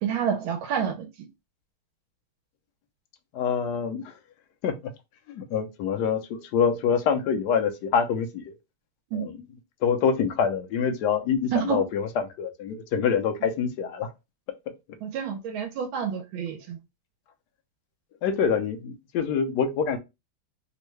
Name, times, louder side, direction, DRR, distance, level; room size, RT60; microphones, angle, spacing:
voice 1, 0.0-1.1 9.1-9.3 11.5-11.8 15.0-16.8, right 8 dB, 85° right, 1.4 m, -28 dB
voice 2, 3.3-4.1 4.6-4.9 5.3-8.5 9.1-9.4 9.8-14.1 18.2-20.0, left 6 dB, 70° left, 1.1 m, -26 dB
3.6 x 2.1 x 3.0 m
omnidirectional pair, 2.2 m